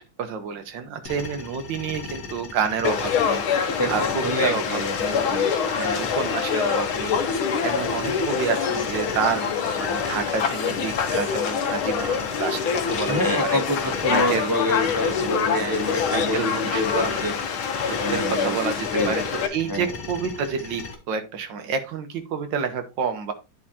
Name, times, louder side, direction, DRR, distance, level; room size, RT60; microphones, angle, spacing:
voice 1, 0.0-5.3 5.7-13.6 14.1-14.5 15.5-17.2 17.9-23.3, right 6 dB, 65° right, 1.7 m, -29 dB
sound 1, 1.1-20.9, left 4 dB, 55° left, 1.9 m, -37 dB
Conversation / Crowd, 2.8-19.5, left 7 dB, 90° left, 1.8 m, -25 dB
voice 2, 3.8-5.7 13.1-17.3 18.0-18.6 18.9-19.2 19.7-19.9, left 1 dB, 15° right, 0.9 m, -27 dB
11.0 x 4.9 x 2.8 m
omnidirectional pair, 2.2 m